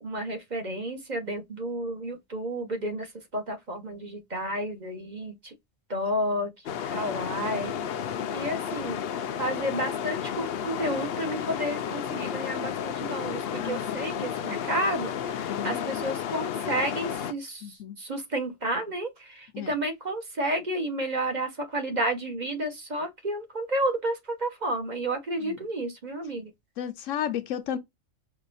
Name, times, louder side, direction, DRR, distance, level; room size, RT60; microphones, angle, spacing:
voice 1, 0.0-3.1 3.3-5.5 5.9-6.5 6.9-7.7 8.3-9.0 9.4-15.1 15.4-17.6 18.0-26.5, right 1 dB, 35° right, 1.1 m, -31 dB
sound 1, 6.7-17.3, left 8 dB, 60° left, 0.7 m, -32 dB
voice 2, 13.6-14.1 15.5-16.0 17.6-18.0 19.5-19.7 25.4-25.6 26.8-27.8, left 10 dB, 80° left, 1.0 m, -33 dB
5.4 x 2.5 x 2.6 m
omnidirectional pair, 1.3 m